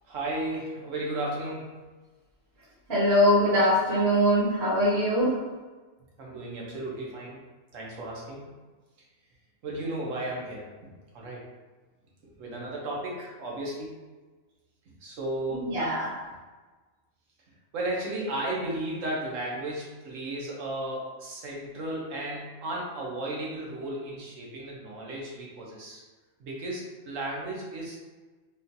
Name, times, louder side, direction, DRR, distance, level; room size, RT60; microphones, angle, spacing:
voice 1, 0.0-1.8 6.2-7.4 7.7-8.5 9.6-11.5 12.4-14.0 14.9-15.8 17.7-26.0 26.4-28.0, right 1 dB, 70° right, -3 dB, 1.2 m, -34 dB
voice 2, 2.9-5.4 15.5-16.1, equal, 50° right, -9 dB, 1.2 m, -22 dB
3.6 x 2.4 x 2.7 m, 1.3 s
omnidirectional pair, 1.4 m